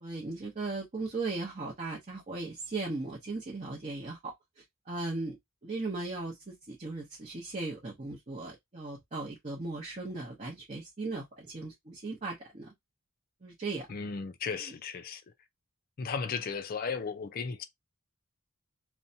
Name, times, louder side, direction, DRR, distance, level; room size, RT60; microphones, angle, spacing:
voice 1, 0.0-5.4 5.6-12.7 13.4-13.9, right 3 dB, 35° right, 0.7 m, -37 dB
voice 2, 13.9-15.2 16.0-17.6, left 5 dB, 40° left, 0.4 m, -35 dB
2.6 x 2.2 x 2.6 m
head